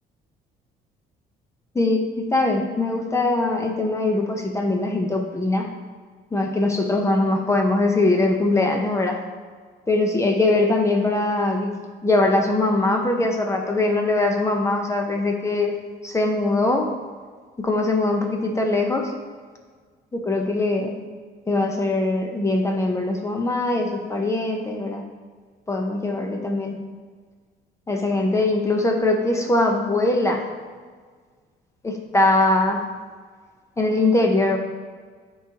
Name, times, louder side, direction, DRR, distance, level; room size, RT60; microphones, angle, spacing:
voice 1, 1.7-5.7 6.3-9.2 9.9-11.7 12.0-15.7 16.0-16.9 17.6-19.1 20.1-21.0 21.5-25.0 25.7-26.8 27.9-30.4 31.8-32.8 33.8-34.6, left 2 dB, 15° left, 2 dB, 0.9 m, -21 dB
9.9 x 4.7 x 2.9 m, 1.6 s
cardioid pair, 110°, 17 cm